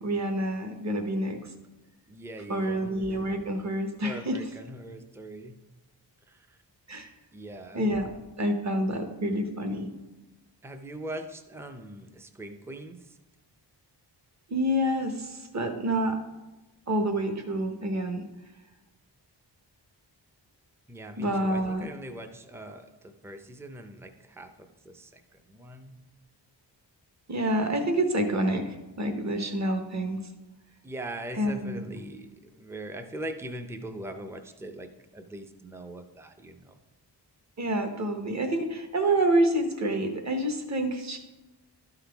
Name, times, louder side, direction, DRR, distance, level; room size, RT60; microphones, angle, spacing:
voice 1, 0.0-1.5 2.5-4.4 6.9-7.1 7.7-8.1 8.4-9.9 14.5-16.2 16.9-18.2 21.2-21.9 27.3-30.2 31.3-31.9 37.6-41.2, right 1 dB, 40° right, 6 dB, 1.0 m, -28 dB
voice 2, 2.1-2.9 4.0-5.5 6.3-6.4 7.3-7.9 10.6-13.0 20.9-24.5 24.8-25.2 25.5-26.0 30.8-36.8, right 1 dB, 5° right, 7 dB, 0.5 m, -41 dB
12.5 x 5.8 x 3.4 m, 1.1 s
wide cardioid pair, 145°, 44 cm